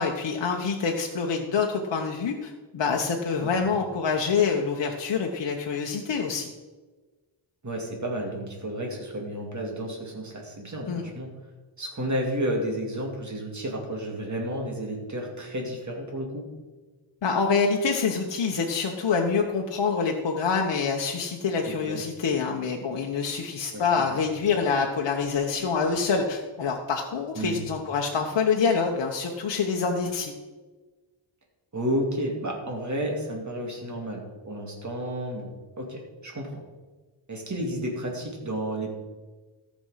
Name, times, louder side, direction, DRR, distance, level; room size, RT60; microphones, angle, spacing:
voice 1, 0.0-6.5 10.9-11.1 17.2-30.3, left 5 dB, 60° left, 1 dB, 1.1 m, -26 dB
voice 2, 3.4-3.8 7.6-11.3 11.8-16.4 21.7-22.0 23.7-24.2 27.3-27.6 31.7-35.5 35.8-36.6 37.3-38.9, right 1 dB, 35° right, 0 dB, 2.5 m, -32 dB
14.5 x 6.4 x 5.6 m, 1.3 s
wide cardioid pair, 180°, 49 cm